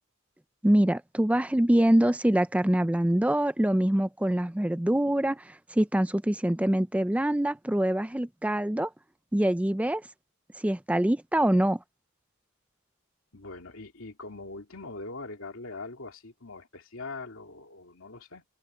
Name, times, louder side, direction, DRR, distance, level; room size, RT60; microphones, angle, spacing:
voice 1, 0.6-8.9 9.3-10.1 10.6-11.8, right 1 dB, 5° right, 0.4 m, -24 dB
voice 2, 13.3-18.4, left 3 dB, 70° left, 2.9 m, -42 dB
open air
head